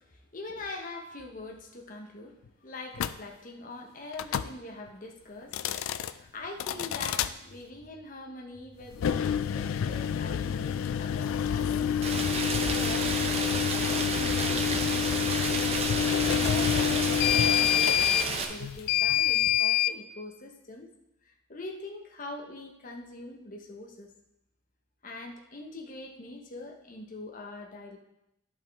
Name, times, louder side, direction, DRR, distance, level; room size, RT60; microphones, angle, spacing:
voice 1, 0.1-12.1 12.8-13.4 13.7-15.6 16.1-20.9 21.2-24.1 25.0-28.0, left 2 dB, 40° left, 2 dB, 1.0 m, -43 dB
sound 1, 3.0-3.2 4.1-4.5 5.4-6.1 6.6-7.3 8.9-19.9, left 9 dB, 85° left, 0.3 m, -27 dB
sound 2, 6.7-8.0 8.5-9.9 10.4-10.8 11.2-13.4 13.7-14.3, equal, 15° right, 1.8 m, -57 dB
Rain, 12.0-18.4, right 4 dB, 30° right, 0.7 m, -31 dB
11.0 x 5.4 x 3.5 m, 0.86 s
head